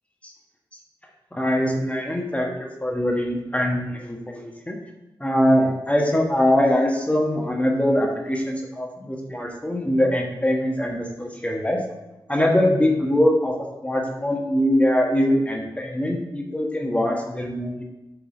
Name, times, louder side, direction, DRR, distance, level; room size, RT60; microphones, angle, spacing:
voice 1, 1.3-4.8 5.2-11.8 12.3-13.5 13.8-17.8, left 1 dB, 15° left, 0 dB, 1.3 m, -22 dB
7.4 x 3.8 x 4.9 m, 1.0 s
cardioid pair, 60°, 9 cm